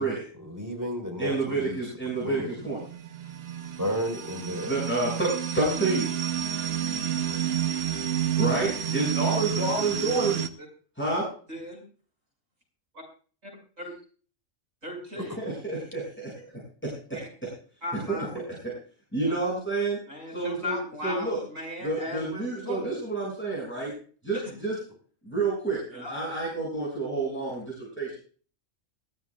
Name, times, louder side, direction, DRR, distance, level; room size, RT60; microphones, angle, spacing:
voice 1, 0.4-1.9 2.2-2.6 3.8-4.7 15.3-15.4, equal, 15° right, 1 dB, 4.1 m, -32 dB
voice 2, 1.2-2.8 4.5-5.3 5.5-6.1 8.4-10.4 11.0-11.2 15.1-16.4 16.8-17.2 17.9-18.3 19.1-20.0 20.3-21.4 21.8-23.9 24.2-24.7 25.2-28.2, right 3 dB, 10° left, -6 dB, 7.0 m, -29 dB
sound 1, 2.0-10.5, right 10 dB, 55° right, 1.1 m, -30 dB
voice 3, 11.5-11.8 12.9-13.0 13.4-13.5 13.8-13.9 14.8-15.3 17.1-17.3 17.8-18.4 19.2-19.3 20.1-22.9 24.3-24.4 25.9-26.1, left 2 dB, 90° right, 0 dB, 6.5 m, -37 dB
22.0 x 14.5 x 2.4 m, 0.41 s
omnidirectional pair, 1.3 m